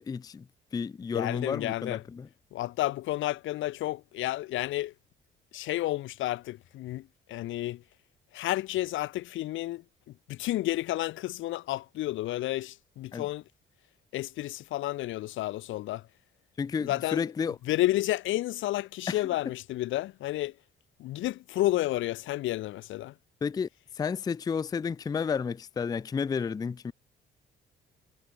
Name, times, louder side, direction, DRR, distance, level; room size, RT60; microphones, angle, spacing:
voice 1, 0.0-2.3 13.1-13.3 16.6-17.6 19.1-19.2 23.4-23.7 23.9-26.9, left 6 dB, 20° left, 0.3 m, -32 dB
voice 2, 1.1-2.0 2.5-4.9 5.5-7.8 8.3-9.8 10.3-13.4 14.1-16.0 16.8-17.2 17.7-20.5 21.0-23.1, left 15 dB, 80° left, 0.6 m, -31 dB
cardioid pair, 90°, 20 cm